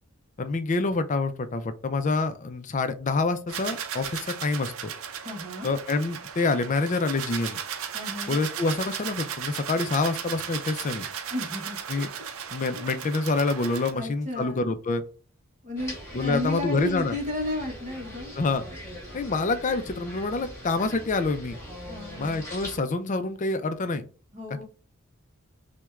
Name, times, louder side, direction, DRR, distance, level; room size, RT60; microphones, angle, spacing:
voice 1, 0.4-4.7 5.6-7.6 8.3-11.1 11.9-12.1 12.5-15.0 16.1-17.1 18.4-18.6 19.1-21.6 22.2-24.1, left 3 dB, 35° left, 10 dB, 0.4 m, -27 dB
sound 1, 3.5-13.9, right 8 dB, 70° right, 0.5 m, -36 dB
voice 2, 5.2-5.7 7.9-8.4 11.3-11.8 12.7-13.0 13.9-14.7 15.6-18.3 18.7-18.8 21.9-22.4 24.3-24.7, left 2 dB, 35° right, 1 dB, 0.9 m, -33 dB
sound 2, 15.8-22.8, equal, 10° left, 1.5 m, -41 dB
5.9 x 2.2 x 2.4 m, 0.37 s
head